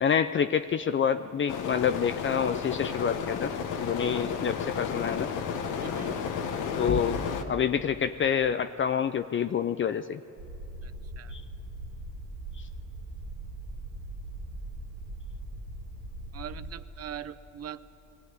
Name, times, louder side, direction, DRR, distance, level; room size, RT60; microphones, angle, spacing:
voice 1, 0.0-3.5 3.8-5.3 6.8-10.2 11.3-11.4 12.6-12.7, left 7 dB, 40° left, 10 dB, 0.6 m, -27 dB
sound 1, 1.5-7.4, left 6 dB, 85° left, 1.4 m, -32 dB
voice 2, 4.0-4.3 5.8-6.2 10.8-11.3 16.3-17.8, right 9 dB, 55° right, 14 dB, 0.8 m, -42 dB
sound 2, 10.4-16.7, right 1 dB, 90° right, 1.8 m, -40 dB
21.5 x 15.5 x 9.4 m, 2.9 s
cardioid pair, 90°, 30 cm